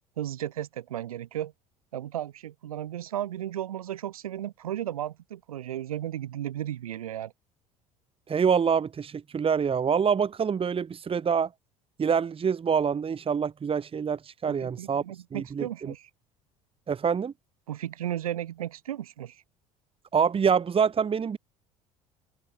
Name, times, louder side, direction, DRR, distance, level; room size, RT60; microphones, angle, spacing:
voice 1, 0.2-1.5 1.9-7.3 14.5-16.1 17.7-19.4, right 12 dB, 85° right, 6.9 m, -34 dB
voice 2, 8.3-11.5 12.0-15.0 15.3-15.9 16.9-17.3 20.1-21.4, right 6 dB, 30° right, 1.6 m, -26 dB
open air
hypercardioid pair, 65°, 18 cm